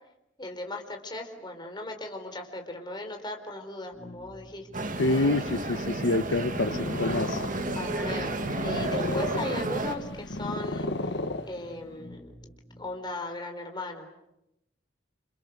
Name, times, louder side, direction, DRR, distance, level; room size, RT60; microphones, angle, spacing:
voice 1, 0.4-5.2 7.7-11.1 11.5-12.5 12.8-14.1, left 2 dB, 25° left, 4 dB, 4.5 m, -38 dB
sound 1, 3.9-12.9, left 1 dB, 5° left, 3.7 m, -49 dB
sound 2, 4.7-10.0, right 2 dB, 45° right, 2.1 m, -32 dB
voice 2, 5.0-7.4, left 2 dB, 80° left, 10 dB, 1.0 m, -27 dB
Purr, 6.2-11.9, left 2 dB, 60° left, 1.5 m, -34 dB
29.5 x 29.0 x 6.7 m, 0.85 s
head